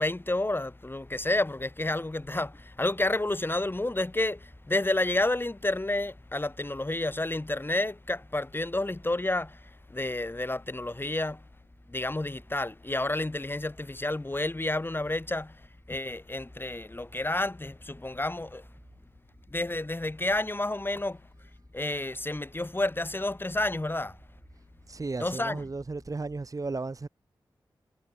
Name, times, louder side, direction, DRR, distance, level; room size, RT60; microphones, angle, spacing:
voice 1, 0.0-11.4 11.9-18.7 19.5-21.2 21.7-24.2 25.2-25.6, left 2 dB, 25° left, 7.9 m, -30 dB
voice 2, 24.9-27.1, right 3 dB, 40° right, 2.0 m, -34 dB
cardioid pair, 50°, 8 cm